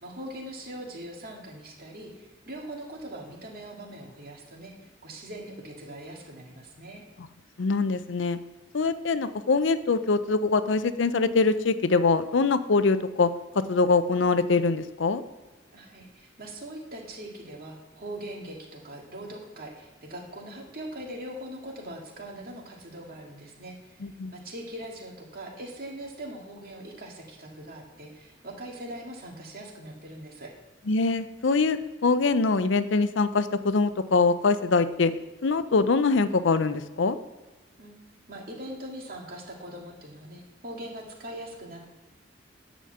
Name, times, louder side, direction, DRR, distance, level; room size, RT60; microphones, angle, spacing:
voice 1, 0.0-7.0 15.7-30.5 37.8-41.9, right 1 dB, 55° right, -1 dB, 2.4 m, -41 dB
voice 2, 7.6-8.4 8.7-13.3 13.5-15.2 24.0-24.3 30.9-35.1 35.4-37.2, left 4 dB, 90° left, 12 dB, 0.6 m, -23 dB
10.0 x 5.1 x 7.9 m, 1.2 s
head